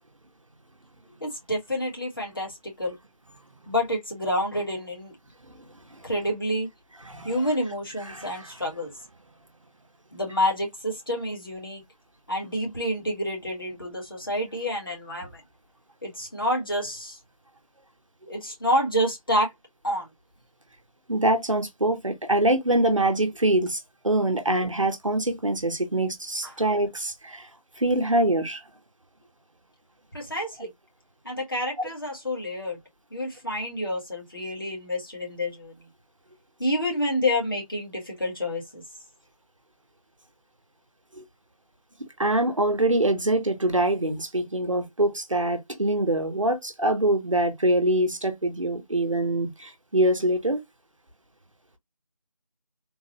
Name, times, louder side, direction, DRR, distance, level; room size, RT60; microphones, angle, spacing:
voice 1, 1.2-3.0 3.7-5.1 6.0-6.7 7.2-8.9 10.1-11.8 12.3-15.4 16.0-17.2 18.3-19.5 19.8-20.1 26.4-26.5 30.1-30.7 31.2-32.8 33.1-35.9 36.6-38.8, left 1 dB, 35° left, 1.5 m, -28 dB
voice 2, 8.1-8.4 21.1-27.5 27.8-28.6 41.2-41.3 42.2-50.6, right 1 dB, 55° right, 1.0 m, -24 dB
3.8 x 2.3 x 2.9 m
figure-of-eight pair, 170°, 19 cm